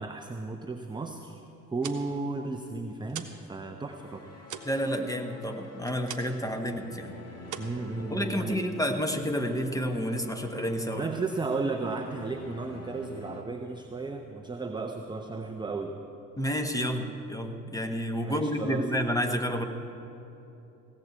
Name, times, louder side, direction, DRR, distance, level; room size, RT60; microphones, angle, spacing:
voice 1, 0.0-1.4 1.7-4.3 7.6-8.7 11.0-16.0 18.2-18.9, right 3 dB, 10° right, 4 dB, 0.7 m, -34 dB
sound 1, 1.6-3.5 3.8-6.5 6.8-7.1 7.4-8.5, right 8 dB, 40° right, 1.2 m, -43 dB
sound 2, 3.9-13.4, left 1 dB, 35° left, 2.1 m, -47 dB
voice 2, 4.6-7.1 8.1-11.1 16.4-19.6, equal, 5° left, 5 dB, 1.3 m, -30 dB
16.5 x 7.6 x 8.3 m, 2.9 s
figure-of-eight pair, 60°, 46 cm